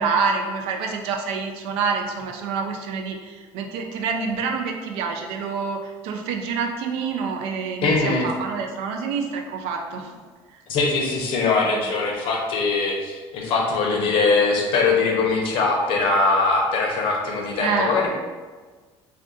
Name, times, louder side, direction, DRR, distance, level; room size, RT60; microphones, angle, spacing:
voice 1, 0.0-10.1 17.6-18.0, right 5 dB, 85° right, 3 dB, 0.4 m, -27 dB
voice 2, 7.8-8.3 10.7-18.1, left 3 dB, 65° left, 0 dB, 0.7 m, -21 dB
2.5 x 2.4 x 3.7 m, 1.4 s
cardioid pair, 140°, 10 cm